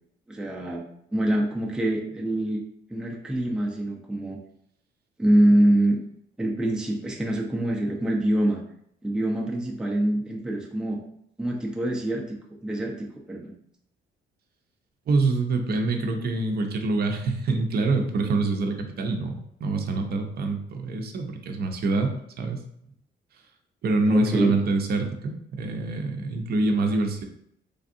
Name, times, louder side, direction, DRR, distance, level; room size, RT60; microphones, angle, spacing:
voice 1, 0.3-0.8 1.1-2.6 2.9-4.4 5.2-6.0 6.4-8.6 9.0-11.0 11.4-13.5 24.1-24.5, right 1 dB, 5° right, -1 dB, 0.5 m, -25 dB
voice 2, 15.1-22.6 23.8-27.2, right 3 dB, 55° right, 4 dB, 0.6 m, -25 dB
3.3 x 2.5 x 2.6 m, 0.71 s
cardioid pair, 90°, 20 cm